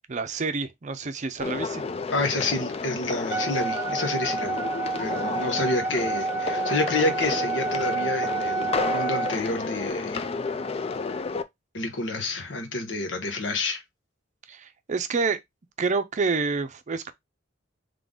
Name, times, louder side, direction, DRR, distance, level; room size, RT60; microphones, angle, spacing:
voice 1, 0.1-1.8 14.5-15.4 15.8-17.1, right 4 dB, 40° right, 0.5 m, -28 dB
sound 1, 1.4-11.4, left 4 dB, 30° left, 0.4 m, -31 dB
voice 2, 2.1-4.6 5.0-10.3 11.7-13.8, left 2 dB, 75° left, 1.1 m, -29 dB
Wind instrument woodwind instrument, 3.3-9.4, right 4 dB, 10° right, 0.8 m, -29 dB
3.8 x 3.3 x 3.6 m
head